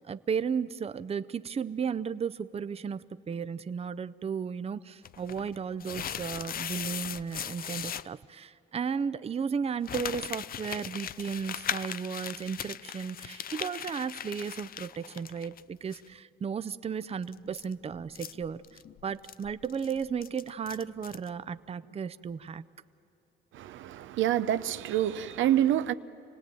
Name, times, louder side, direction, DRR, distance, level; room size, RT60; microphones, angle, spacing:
voice 1, 0.0-22.7, right 6 dB, 30° right, 0.6 m, -34 dB
sound 1, 5.1-8.1 9.8-15.6 15.9-16.0 17.2-21.3, left 9 dB, 50° left, 0.5 m, -39 dB
voice 2, 23.5-25.9, right 11 dB, 80° right, 0.6 m, -27 dB
27.0 x 18.0 x 9.1 m
cardioid pair, 90°, 20 cm